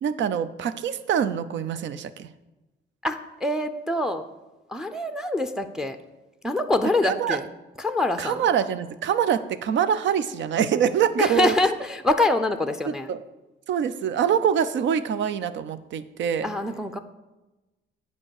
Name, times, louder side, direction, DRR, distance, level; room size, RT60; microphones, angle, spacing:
voice 1, 0.0-2.3 7.0-7.4 8.2-11.5 12.9-13.2 13.7-16.5, right 8 dB, 70° right, 14 dB, 0.6 m, -24 dB
voice 2, 3.0-4.2 4.7-6.0 6.4-7.5 7.8-8.4 11.2-13.1 16.4-17.0, left 2 dB, 5° right, 8 dB, 0.6 m, -25 dB
8.7 x 5.4 x 6.5 m, 1.1 s
cardioid pair, 90°, 20 cm